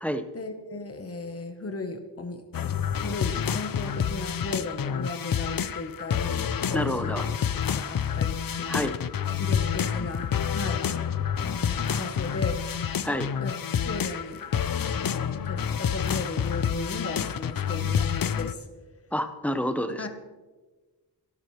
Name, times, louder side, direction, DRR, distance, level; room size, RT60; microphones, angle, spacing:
voice 1, 0.3-7.2 7.6-8.9 9.4-11.1 11.4-12.6 13.1-14.5 14.8-18.7 20.0-20.1, left 3 dB, 35° left, 6 dB, 1.2 m, -36 dB
sound 1, 2.5-18.5, left 8 dB, 55° left, 0.6 m, -28 dB
voice 2, 6.7-7.3 8.7-9.0 13.0-13.3 19.1-20.1, equal, 5° left, 8 dB, 0.9 m, -28 dB
26.0 x 12.5 x 3.3 m, 1.3 s
wide cardioid pair, 150°, 42 cm